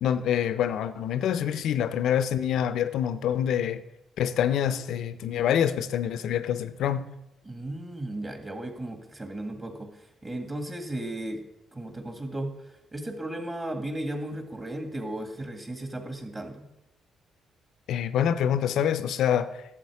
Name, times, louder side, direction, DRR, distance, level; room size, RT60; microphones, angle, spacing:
voice 1, 0.0-3.8 4.2-7.1 17.9-19.5, left 9 dB, 80° left, 12 dB, 0.6 m, -26 dB
voice 2, 7.4-9.9 10.2-11.4 11.7-12.6 12.9-16.7, right 1 dB, 25° right, 5 dB, 1.8 m, -35 dB
11.5 x 7.6 x 4.8 m, 0.90 s
cardioid pair, 90°, 0 cm